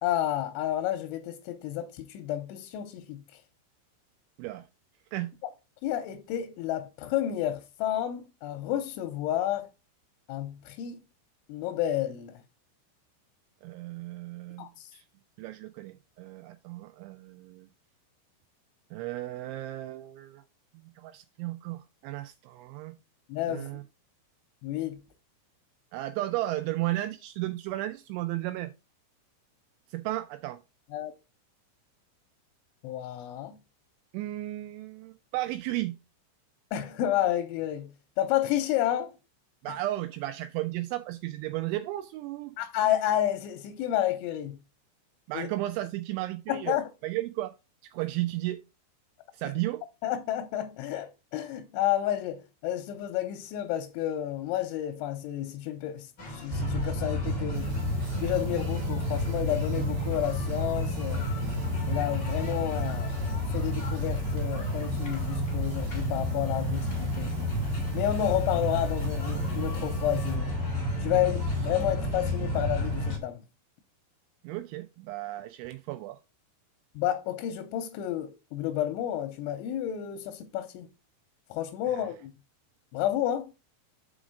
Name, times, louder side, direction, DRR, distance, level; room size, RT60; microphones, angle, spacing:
voice 1, 0.0-3.2 5.8-9.7 10.3-11.0 11.5-12.4 14.6-14.9 23.3-23.8 24.6-25.0 30.9-31.1 32.8-33.6 36.7-37.9 38.2-39.1 42.6-44.6 45.3-45.5 46.5-46.9 50.0-57.8 58.2-61.3 61.9-67.6 67.9-70.5 71.0-73.4 77.0-80.9 81.5-82.3 82.9-83.5, left 12 dB, 85° left, 2.9 m, -30 dB
voice 2, 13.6-14.7 14.9-15.0 15.4-17.7 18.9-20.4 20.7-23.0 23.5-23.8 25.9-28.7 29.9-30.6 34.1-36.0 39.6-42.6 45.3-46.7 47.0-47.5 47.9-48.6 49.3-49.8 74.4-76.2 81.9-82.0, right 16 dB, 85° right, 2.7 m, -34 dB
sound 1, 56.2-73.2, left 2 dB, 70° left, 1.0 m, -43 dB
sound 2, 56.5-73.2, equal, 65° right, 2.9 m, -30 dB
sound 3, 57.5-70.4, left 5 dB, 35° left, 1.5 m, -49 dB
6.2 x 5.1 x 4.9 m
omnidirectional pair, 5.7 m